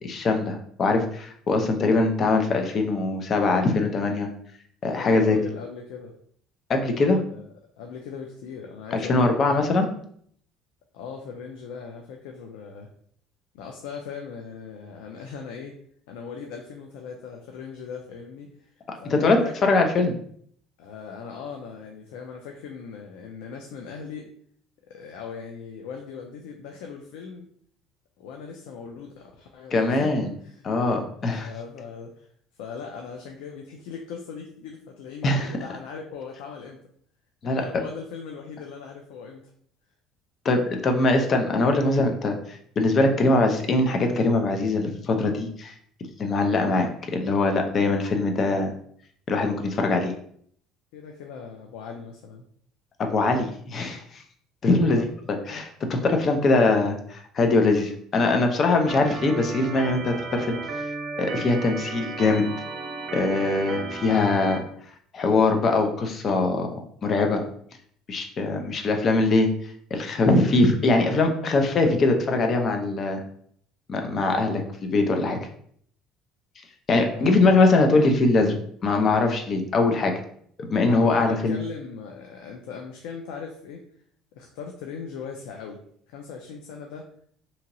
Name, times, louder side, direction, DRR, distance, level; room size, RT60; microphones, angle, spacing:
voice 1, 0.0-4.3 4.8-5.4 6.7-7.2 8.9-9.9 19.1-20.1 29.7-30.3 30.6-31.5 35.2-35.6 37.4-37.6 40.4-45.7 46.2-48.7 49.3-50.1 53.0-54.2 54.6-60.8 61.2-62.5 63.1-64.6 65.1-66.7 67.0-67.4 68.1-69.5 69.9-73.2 73.9-75.4 76.9-80.2 80.6-81.6, left 3 dB, 35° left, 4 dB, 0.5 m, -22 dB
voice 2, 4.9-6.1 7.3-7.4 7.8-9.7 10.9-12.9 13.5-15.8 16.1-18.7 19.0-19.8 20.8-24.3 24.9-27.5 28.2-30.6 31.4-32.3 32.6-36.8 37.4-39.4 50.9-52.4 54.8-55.1 67.3-67.5 77.1-77.6 80.9-83.8 84.3-85.8 86.1-87.1, left 6 dB, 90° left, 2 dB, 0.4 m, -39 dB
Organ, 58.9-64.6, right 3 dB, 40° right, 0.6 m, -34 dB
2.9 x 2.8 x 2.6 m, 0.63 s
cardioid pair, 130°, 0 cm